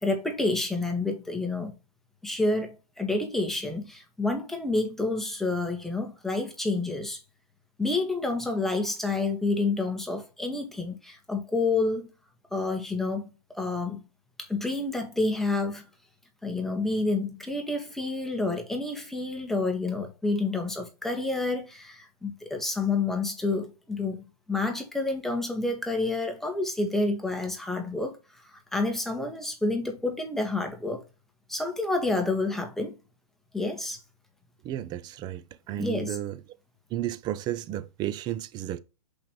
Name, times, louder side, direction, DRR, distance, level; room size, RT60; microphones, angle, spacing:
voice 1, 0.0-1.7 2.2-7.2 7.8-12.1 12.5-13.3 13.5-14.0 14.5-15.8 16.4-28.2 28.5-31.0 31.5-32.9 33.5-34.0 35.8-36.2, left 3 dB, ahead, 1.6 m, -29 dB
voice 2, 34.6-36.4 36.9-38.8, right 12 dB, 20° right, 0.6 m, -33 dB
5.7 x 5.2 x 3.2 m
hypercardioid pair, 135°, 20 cm